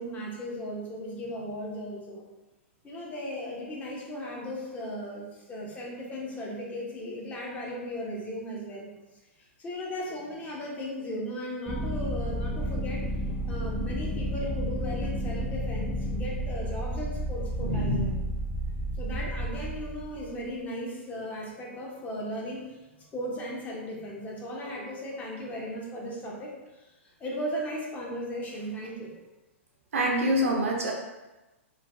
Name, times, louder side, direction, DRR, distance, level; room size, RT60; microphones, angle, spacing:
voice 1, 0.0-2.3 2.8-8.9 9.4-13.1 13.5-18.1 19.0-29.1, equal, 20° left, -3 dB, 0.7 m, -36 dB
sound 1, 11.7-20.4, equal, 5° left, 0.3 m, -32 dB
voice 2, 17.6-18.2 29.9-30.9, equal, 85° right, -1 dB, 0.7 m, -26 dB
3.1 x 2.2 x 2.5 m, 1.1 s
hypercardioid pair, 125°, 7 cm